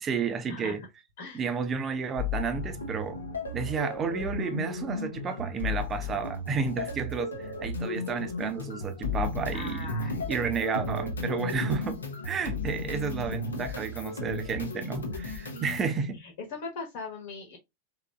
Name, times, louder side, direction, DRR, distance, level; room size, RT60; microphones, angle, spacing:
voice 1, 0.0-0.8 1.3-3.2 3.5-16.2, right 5 dB, 25° right, 0.6 m, -32 dB
sound 1, 2.2-15.9, left 3 dB, 70° left, 0.8 m, -34 dB
voice 2, 9.5-10.2 15.5-17.6, left 4 dB, 50° left, 1.2 m, -40 dB
3.8 x 3.1 x 2.2 m
figure-of-eight pair, 90°, 0 cm